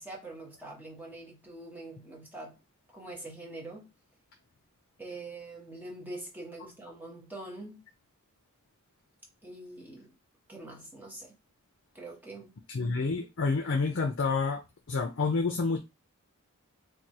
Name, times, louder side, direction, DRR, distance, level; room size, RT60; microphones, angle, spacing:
voice 1, 0.0-2.6 2.9-3.9 5.0-7.8 9.4-10.2 10.5-11.3 11.9-12.6, right 2 dB, 10° right, 1.1 m, -44 dB
voice 2, 12.7-14.6 14.9-15.8, left 4 dB, 55° left, 0.5 m, -28 dB
3.1 x 2.2 x 4.1 m
head